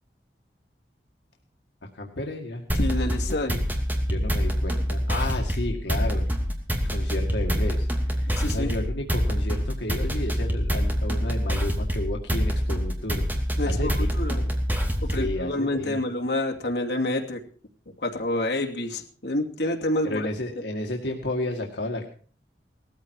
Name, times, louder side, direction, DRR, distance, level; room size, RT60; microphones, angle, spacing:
voice 1, 1.9-2.6 3.3-3.4 4.1-6.3 6.8-13.3 13.6-14.5 15.1-16.0 20.0-22.1, left 1 dB, 90° left, 1 dB, 2.1 m, -32 dB
sound 1, 2.7-15.4, equal, 10° right, 2.6 m, -26 dB
voice 2, 2.8-3.6 8.4-8.7 13.6-14.4 15.0-17.4 18.0-20.3, left 1 dB, 70° left, 1 dB, 2.7 m, -28 dB
18.5 x 14.0 x 4.8 m, 0.43 s
head